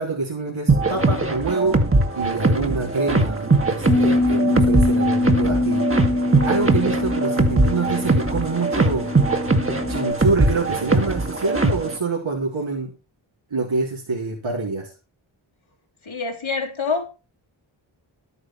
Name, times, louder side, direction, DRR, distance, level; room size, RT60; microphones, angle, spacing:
voice 1, 0.0-1.8 2.2-5.9 6.1-9.1 9.9-13.0 13.5-14.9, right 3 dB, 75° right, -3 dB, 3.6 m, -26 dB
sound 1, 0.7-12.0, right 2 dB, 25° right, 2.1 m, -21 dB
Bass guitar, 3.9-10.1, left 2 dB, 15° left, 1.2 m, -23 dB
voice 2, 16.0-17.1, left 4 dB, 75° left, 1 dB, 3.6 m, -26 dB
12.5 x 9.6 x 4.6 m, 0.31 s
wide cardioid pair, 75°, 48 cm